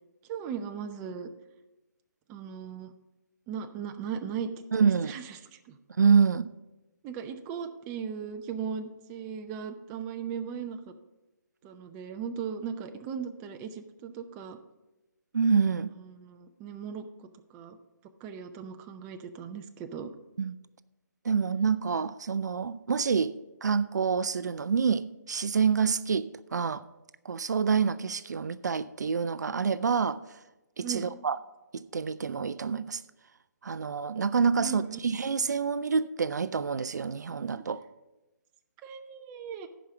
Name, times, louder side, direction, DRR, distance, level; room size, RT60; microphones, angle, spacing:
voice 1, 0.3-1.3 2.3-2.9 3.5-5.8 7.0-10.9 11.6-14.6 16.1-17.1 17.5-17.8 18.2-20.1 30.8-31.1 34.6-35.0 37.6-37.7 38.8-39.7, right 7 dB, 20° right, 0.5 m, -38 dB
voice 2, 4.7-5.1 6.0-6.5 15.3-15.9 20.4-20.5 21.2-26.8 27.2-30.2 30.8-31.4 31.7-33.0 33.6-37.8, right 5 dB, 70° right, 0.4 m, -27 dB
10.5 x 5.0 x 7.1 m
figure-of-eight pair, 145°, 10 cm